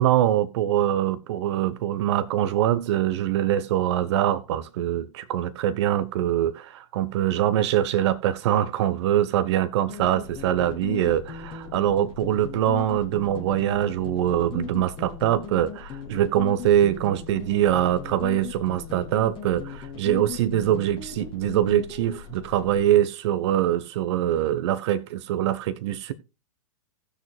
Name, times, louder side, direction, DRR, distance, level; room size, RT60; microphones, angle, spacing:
voice 1, 0.0-26.1, right 11 dB, 55° right, 0.9 m, -23 dB
sound 1, 9.9-22.8, left 8 dB, 30° left, 2.8 m, -38 dB
18.0 x 6.6 x 2.2 m
hypercardioid pair, 115°, 18 cm